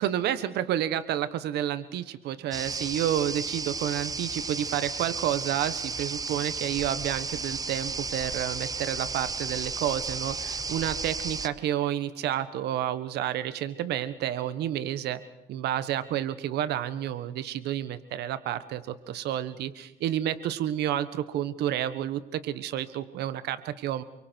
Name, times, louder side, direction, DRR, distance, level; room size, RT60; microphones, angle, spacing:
voice 1, 0.0-15.2 15.5-24.0, right 11 dB, 75° right, 13 dB, 1.4 m, -30 dB
sound 1, 2.5-11.5, right 4 dB, 20° right, 1.0 m, -33 dB
29.0 x 23.5 x 4.6 m, 0.94 s
cardioid pair, 110°, 17 cm